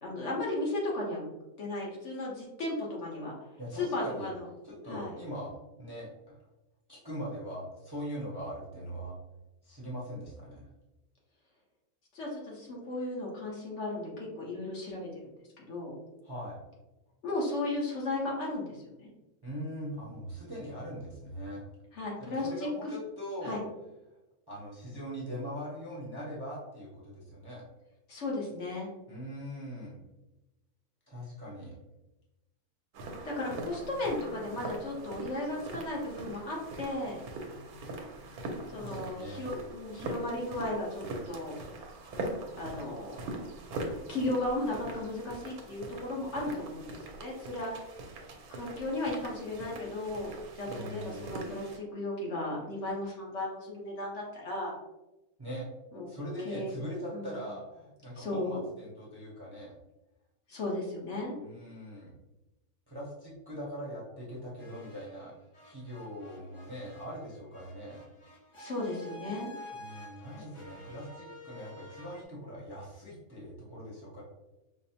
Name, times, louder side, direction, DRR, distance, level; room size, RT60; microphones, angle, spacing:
voice 1, 0.0-1.3 1.6-3.3 3.7-4.5 4.9-5.1 12.1-15.2 15.6-15.9 17.2-19.1 21.9-22.7 23.4-23.6 28.1-28.9 33.2-37.2 38.7-41.6 42.6-43.3 43.7-47.8 48.5-54.7 55.9-56.0 56.4-56.7 57.1-57.4 58.1-58.6 60.5-61.4 68.6-69.5, left 2 dB, 55° left, -3 dB, 1.0 m, -35 dB
voice 2, 3.6-4.3 4.6-6.4 6.9-9.1 9.6-10.7 16.2-16.6 19.4-21.6 22.2-23.6 24.5-27.6 29.1-30.0 31.1-31.7 38.8-39.4 50.7-51.3 55.4-55.7 56.1-59.7 61.4-62.2 62.9-65.3 65.6-68.0 69.7-74.2, equal, 20° right, -6 dB, 0.7 m, -41 dB
sound 1, 32.9-51.8, right 2 dB, 85° right, 1.1 m, -42 dB
sound 2, 64.6-65.3 65.5-72.2, left 1 dB, 30° left, 0.6 m, -50 dB
5.2 x 2.0 x 2.8 m, 0.99 s
omnidirectional pair, 1.5 m